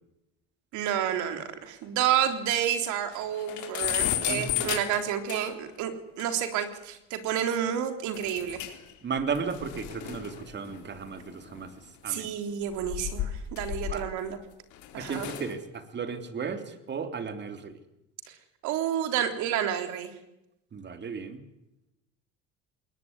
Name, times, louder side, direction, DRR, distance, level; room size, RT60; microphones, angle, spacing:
voice 1, 0.7-5.9 6.2-8.6 12.1-14.4 14.9-15.3 18.6-20.1, right 10 dB, 70° right, 8 dB, 3.6 m, -29 dB
sound 1, 1.4-1.5 1.8-1.9 2.3-2.4 2.7-2.8 3.1-5.7 6.2-6.3 8.1-8.9 9.2-11.8 12.6-14.3 14.7-15.5, left 12 dB, 65° left, 4.1 m, -34 dB
voice 2, 4.3-4.7 9.0-12.3 13.8-14.1 15.0-17.7 20.7-21.4, right 5 dB, 35° right, 8 dB, 3.2 m, -35 dB
20.5 x 19.5 x 9.7 m, 0.91 s
supercardioid pair, 95°, 31 cm